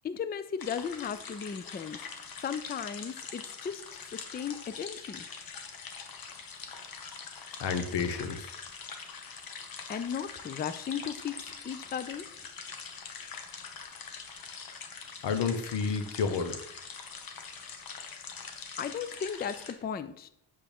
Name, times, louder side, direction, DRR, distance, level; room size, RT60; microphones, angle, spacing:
voice 1, 0.0-2.0 2.4-5.2 9.9-12.3 18.8-20.3, left 7 dB, 25° left, 12 dB, 0.3 m, -36 dB
sound 1, 0.6-19.7, left 5 dB, 55° left, 1.2 m, -44 dB
voice 2, 7.6-8.5 15.2-16.6, left 5 dB, 90° left, 8 dB, 1.1 m, -30 dB
8.5 x 6.7 x 3.5 m, 0.74 s
wide cardioid pair, 150°, 41 cm